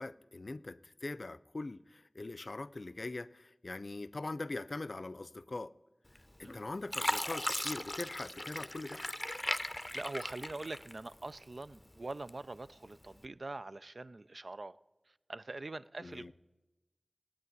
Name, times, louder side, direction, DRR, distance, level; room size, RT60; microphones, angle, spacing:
voice 1, 0.0-5.7 6.4-9.0 16.0-16.3, left 2 dB, 80° left, 0.5 m, -42 dB
Fill (with liquid), 6.2-6.5 6.9-11.3 11.7-12.6 13.1-13.3, left 1 dB, 25° left, 0.6 m, -38 dB
voice 2, 9.7-14.8 15.1-16.3, right 2 dB, 80° right, 0.5 m, -44 dB
17.0 x 8.8 x 9.4 m
wide cardioid pair, 50°, 0 cm